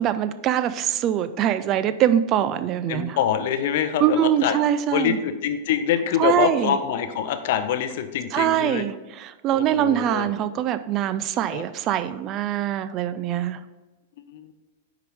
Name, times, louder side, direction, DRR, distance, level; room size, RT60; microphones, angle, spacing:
voice 1, 0.0-3.2 4.0-5.2 6.2-6.8 8.3-13.6, right 10 dB, 35° right, 13 dB, 0.3 m, -23 dB
voice 2, 2.9-4.6 4.9-8.8 9.5-10.3 11.5-11.6 14.3-14.5, left 9 dB, 50° left, 9 dB, 0.6 m, -25 dB
9.7 x 3.8 x 3.5 m, 1.1 s
figure-of-eight pair, 95°, 0 cm